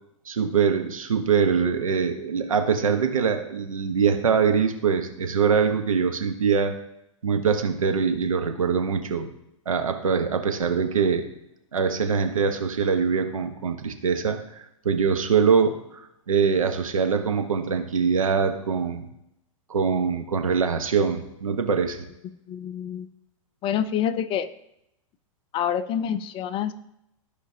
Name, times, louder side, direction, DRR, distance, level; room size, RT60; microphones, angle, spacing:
voice 1, 0.3-6.8 7.2-9.3 9.7-11.3 11.7-14.4 14.8-19.1 19.7-22.0, right 6 dB, 85° right, 6 dB, 1.1 m, -23 dB
voice 2, 22.5-23.1 23.6-24.5 25.5-26.7, left 9 dB, 30° left, 14 dB, 0.5 m, -27 dB
14.0 x 5.0 x 2.8 m, 0.81 s
hypercardioid pair, 105°, 17 cm